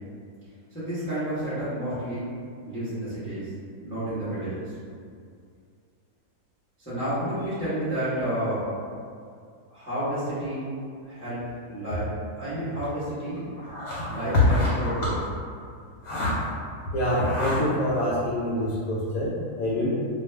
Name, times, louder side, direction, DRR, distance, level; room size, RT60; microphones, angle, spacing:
voice 1, 0.7-2.3 2.6-3.5 3.8-4.7 6.8-8.7 9.7-10.7 11.0-11.4 11.7-12.1 12.4-13.4 14.1-15.1, right 1 dB, 10° left, -13 dB, 0.6 m, -30 dB
voice 2, 13.6-15.1 16.0-16.3 16.9-19.9, left 1 dB, 70° left, -6 dB, 0.9 m, -25 dB
2.5 x 2.3 x 3.2 m, 2.3 s
omnidirectional pair, 1.7 m